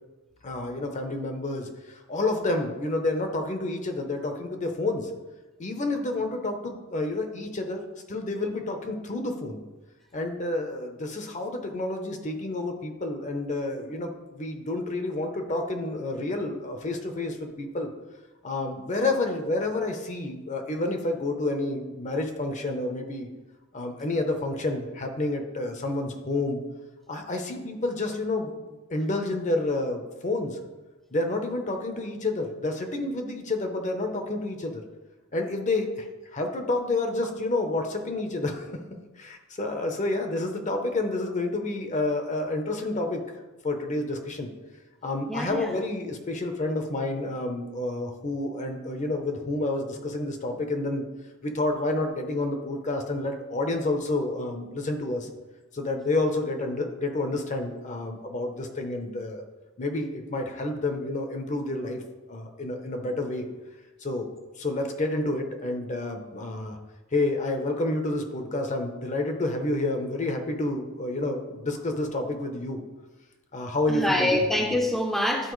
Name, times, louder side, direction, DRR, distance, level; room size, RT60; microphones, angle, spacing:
voice 1, 0.4-5.1 5.6-9.6 10.1-17.9 18.4-23.3 23.7-26.6 27.1-30.6 31.1-34.8 35.3-36.1 36.3-38.8 39.2-43.2 43.6-44.5 45.0-51.0 51.4-55.3 55.7-59.4 59.8-62.0 62.3-63.5 64.0-64.3 64.6-66.8 67.1-72.8 73.5-74.5, left 2 dB, 35° left, 4 dB, 0.8 m, -29 dB
voice 2, 45.3-45.7 73.9-75.5, left 1 dB, ahead, 0 dB, 0.6 m, -25 dB
11.5 x 4.3 x 3.1 m, 1.2 s
head